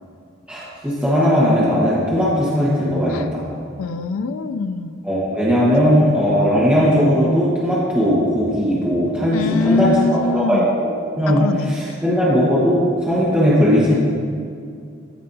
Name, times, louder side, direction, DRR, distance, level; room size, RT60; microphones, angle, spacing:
voice 1, 0.5-3.4 5.0-13.9, equal, 5° right, -9 dB, 1.2 m, -18 dB
voice 2, 3.8-4.9 5.9-6.2 9.3-10.8 11.3-11.7, left 4 dB, 80° left, 9 dB, 0.4 m, -23 dB
14.0 x 5.5 x 2.7 m, 2.3 s
head